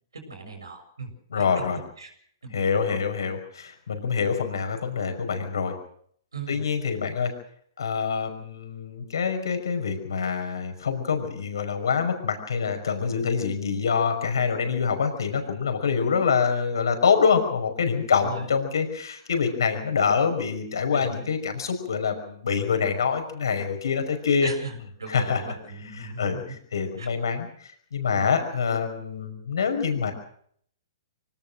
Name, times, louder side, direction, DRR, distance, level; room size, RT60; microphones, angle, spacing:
voice 1, 0.3-1.6 2.0-2.1 2.4-2.7 6.3-6.6 15.9-16.1 18.0-18.5 20.9-21.1 24.4-26.6 27.0-27.1 28.1-28.4, right 3 dB, 85° right, 4 dB, 6.8 m, -39 dB
voice 2, 1.3-1.8 2.5-5.7 6.5-7.3 7.8-24.5 25.1-25.5 25.9-27.5 27.9-30.1, left 6 dB, 70° left, 6 dB, 5.7 m, -25 dB
24.5 x 18.5 x 6.4 m, 0.64 s
hypercardioid pair, 120°, 2 cm